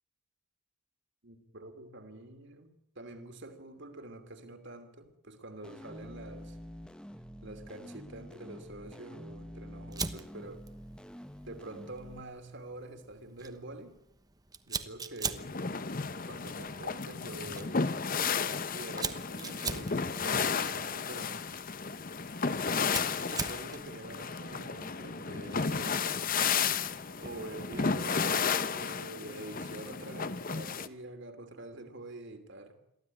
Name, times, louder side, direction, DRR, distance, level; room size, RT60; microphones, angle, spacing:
voice 1, 1.2-6.6 7.4-10.6 11.4-14.0 14.7-15.5 16.2-17.8 18.7-21.4 22.8-25.9 27.1-28.4 28.7-32.7, right 2 dB, 55° right, 8 dB, 2.8 m, -46 dB
sound 1, 5.6-12.2, equal, 5° left, 0.9 m, -47 dB
Fire, 9.9-28.1, right 5 dB, 15° right, 1.0 m, -44 dB
sound 2, 15.4-30.9, left 5 dB, 40° left, 0.8 m, -33 dB
23.0 x 15.0 x 9.8 m, 0.81 s
head